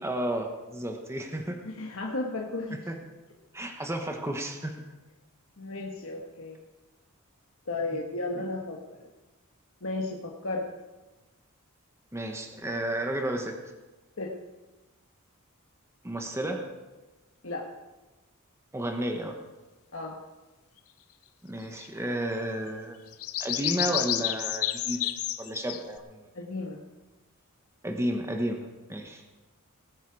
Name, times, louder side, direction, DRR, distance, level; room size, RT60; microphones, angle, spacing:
voice 1, 0.0-1.6 2.9-3.0 3.5-4.8 12.1-13.6 16.0-16.7 18.7-19.4 21.4-23.0 23.4-25.1 25.4-26.2 27.8-29.2, right 1 dB, 10° right, 3 dB, 1.2 m, -32 dB
voice 2, 1.7-2.9 5.6-6.6 7.7-9.1 9.8-10.7 14.2-14.3 17.4-17.7 19.9-20.2 26.3-26.8, left 2 dB, 65° left, -1 dB, 1.4 m, -34 dB
sound 1, 21.8-21.9 23.1-26.0, left 13 dB, 80° left, 0.8 m, -30 dB
19.0 x 9.4 x 4.8 m, 1.1 s
head